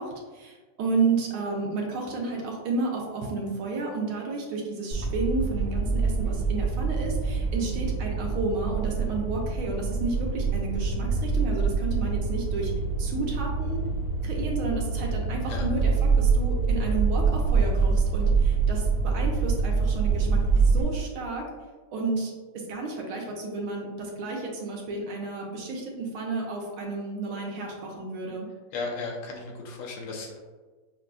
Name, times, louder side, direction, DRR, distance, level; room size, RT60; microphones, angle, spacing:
voice 1, 0.0-12.7 13.0-13.8 14.2-21.4 21.9-28.5, right 3 dB, 75° right, -1 dB, 1.6 m, -31 dB
sound 1, 4.9-20.8, right 4 dB, 60° right, 1.1 m, -25 dB
voice 2, 28.7-30.4, left 3 dB, 85° left, 0 dB, 1.7 m, -35 dB
6.0 x 2.6 x 2.3 m, 1.3 s
omnidirectional pair, 2.4 m